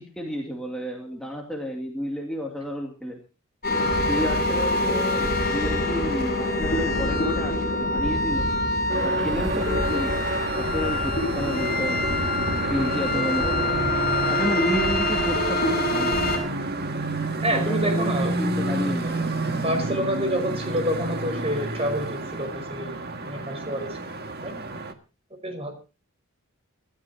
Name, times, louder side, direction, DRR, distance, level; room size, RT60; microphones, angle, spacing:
voice 1, 0.0-3.2 4.0-8.5 9.0-10.2 10.5-12.2 12.7-13.7 14.3-16.2 17.5-19.3, equal, 5° left, -1 dB, 2.4 m, -31 dB
sound 1, 3.6-16.4, left 1 dB, 45° left, 7.5 m, -25 dB
sound 2, 8.9-24.9, right 2 dB, 45° right, 1.8 m, -29 dB
voice 2, 17.4-18.4 19.6-23.0 23.2-24.0 24.4-24.5 25.4-25.7, equal, 25° right, 6 dB, 5.4 m, -27 dB
26.0 x 13.5 x 2.8 m, 0.33 s
head